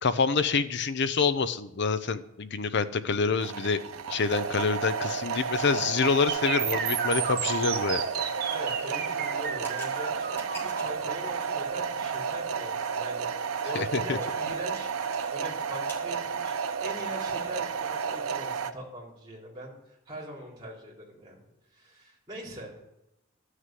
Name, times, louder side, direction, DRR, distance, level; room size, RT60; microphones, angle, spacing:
voice 1, 0.0-3.8 4.1-8.0 13.7-14.2, left 5 dB, 55° left, 12 dB, 0.7 m, -27 dB
sound 1, 3.4-18.7, right 6 dB, 85° right, 0.6 m, -32 dB
sound 2, 6.3-14.2, right 7 dB, 45° right, 1.1 m, -34 dB
voice 2, 8.5-19.8 20.1-21.4 21.7-22.8, equal, 20° right, -4 dB, 3.7 m, -42 dB
sound 3, 8.8-11.1 11.7-12.1 12.4-12.5 12.8-12.9 13.3-15.3 15.5-16.1, right 1 dB, 10° left, 2.1 m, -47 dB
12.5 x 6.5 x 7.6 m, 0.86 s
head